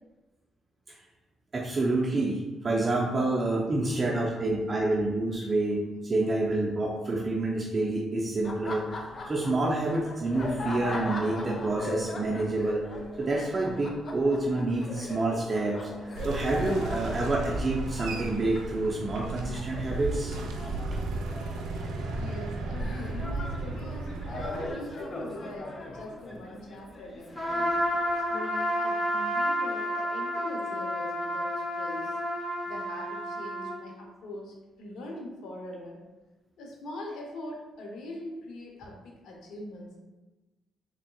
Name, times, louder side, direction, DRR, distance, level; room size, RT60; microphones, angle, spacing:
voice 1, 1.5-8.9 9.3-12.9 13.2-15.9 16.2-20.4 20.9-21.0, right 2 dB, 30° right, -3 dB, 0.6 m, -28 dB
voice 2, 3.9-4.5 22.2-27.8 28.3-32.1 32.7-36.0 36.6-40.0, left 1 dB, 80° left, 0 dB, 0.7 m, -42 dB
Laughter, 8.4-28.2, left 2 dB, 40° left, 0.5 m, -40 dB
sound 1, 16.1-24.7, right 2 dB, 85° right, 0.4 m, -34 dB
Trumpet, 27.4-33.8, equal, 15° left, 0.9 m, -30 dB
3.9 x 3.5 x 2.3 m, 1.2 s
cardioid pair, 90°, 0 cm